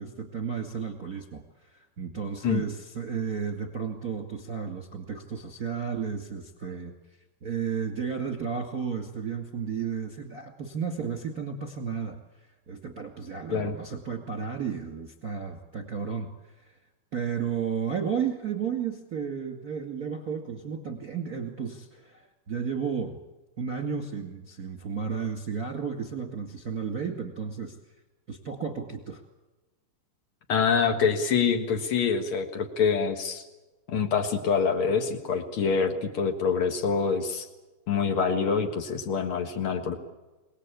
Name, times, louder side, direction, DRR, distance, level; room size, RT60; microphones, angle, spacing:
voice 1, 0.0-6.9 7.4-16.8 17.1-23.2 23.6-27.8 28.3-29.2, right 6 dB, 35° right, 4 dB, 1.6 m, -33 dB
voice 2, 30.5-33.4 33.9-37.5 37.9-40.0, left 6 dB, 70° left, 4 dB, 1.3 m, -26 dB
28.0 x 19.0 x 8.5 m, 1.1 s
omnidirectional pair, 5.2 m